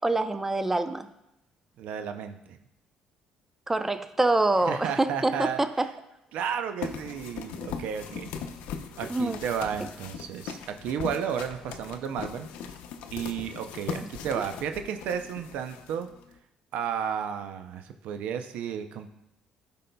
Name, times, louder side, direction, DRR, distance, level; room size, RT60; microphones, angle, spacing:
voice 1, 0.0-1.1 3.7-5.9 9.1-9.4, right 2 dB, 15° right, 10 dB, 0.6 m, -25 dB
voice 2, 1.8-2.6 4.7-5.6 6.3-8.3 9.0-12.7 13.1-16.1 16.7-19.1, right 8 dB, 75° right, 8 dB, 0.5 m, -33 dB
sound 1, 6.8-16.3, left 7 dB, 80° left, 0.6 m, -39 dB
12.5 x 5.3 x 2.3 m, 0.85 s
supercardioid pair, 75°, 2 cm